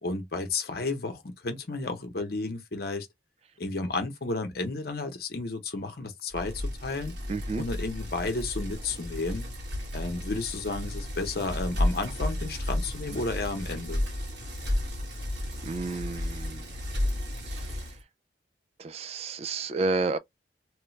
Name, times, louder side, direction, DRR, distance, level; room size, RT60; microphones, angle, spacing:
voice 1, 0.0-3.1 3.6-7.2 7.6-9.5 9.9-14.0, left 3 dB, 60° left, 0.9 m, -32 dB
Bicycle, 6.3-18.0, left 1 dB, 75° right, 1.6 m, -33 dB
voice 2, 7.3-7.6 15.6-16.8 17.5-17.8 18.8-20.2, right 3 dB, 35° right, 0.3 m, -31 dB
3.2 x 2.3 x 3.2 m
head